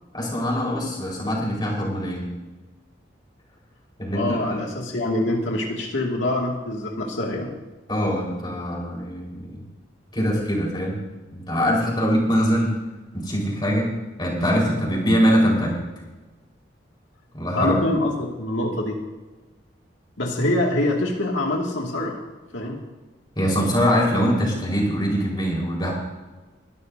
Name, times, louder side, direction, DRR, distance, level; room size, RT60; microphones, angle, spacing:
voice 1, 0.1-2.3 4.0-4.6 7.9-9.6 10.1-11.0 11.3-12.7 13.1-13.9 14.2-15.8 17.3-17.8 23.4-25.9, equal, 25° left, -3 dB, 4.5 m, -23 dB
voice 2, 4.1-7.5 17.5-19.0 20.2-22.2 22.5-22.8, left 1 dB, 85° left, -1 dB, 2.2 m, -25 dB
22.0 x 12.5 x 2.7 m, 1.2 s
head